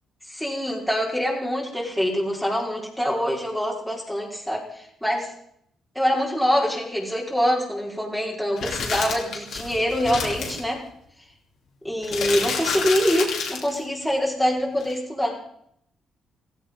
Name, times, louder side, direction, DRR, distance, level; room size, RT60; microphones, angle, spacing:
voice 1, 0.3-5.3 5.9-10.8 11.8-15.4, equal, ahead, -4 dB, 5.0 m, -25 dB
sound 1, 8.6-10.6 12.0-13.8 14.8-14.9, left 5 dB, 70° left, 4.3 m, -29 dB
16.0 x 16.0 x 5.5 m, 0.70 s
cardioid pair, 90°, 0 cm